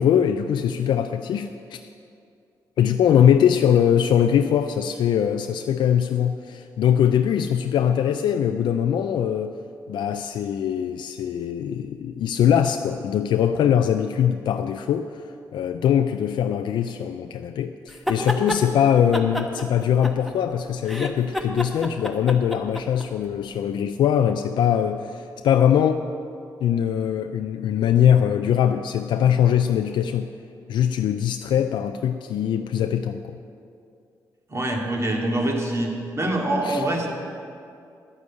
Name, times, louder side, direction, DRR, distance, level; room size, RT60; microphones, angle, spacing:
voice 1, 0.0-1.8 2.8-9.6 9.9-15.2 15.5-26.1 26.6-30.3 30.7-33.4 36.6-36.8, left 9 dB, 80° left, 7 dB, 0.4 m, -22 dB
sound 1, 17.9-18.6 19.1-20.5 20.8-23.1, left 1 dB, ahead, 1.1 m, -28 dB
voice 2, 34.5-35.9 36.2-37.1, right 1 dB, 35° right, 0 dB, 2.3 m, -24 dB
11.0 x 6.3 x 8.4 m, 2.5 s
cardioid pair, 65°, 8 cm